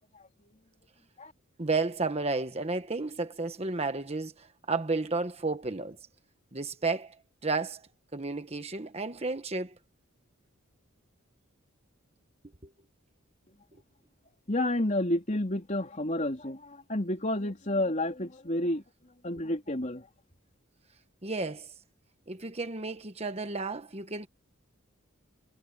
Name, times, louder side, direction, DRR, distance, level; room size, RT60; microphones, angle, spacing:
voice 1, 0.1-0.5 1.2-1.3 14.5-18.8 19.2-20.1, left 1 dB, 35° left, 3.6 m, -30 dB
voice 2, 1.6-6.0 6.5-7.2 7.4-7.8 8.1-9.7 21.2-21.7 22.3-24.3, right 3 dB, 30° right, 1.2 m, -32 dB
head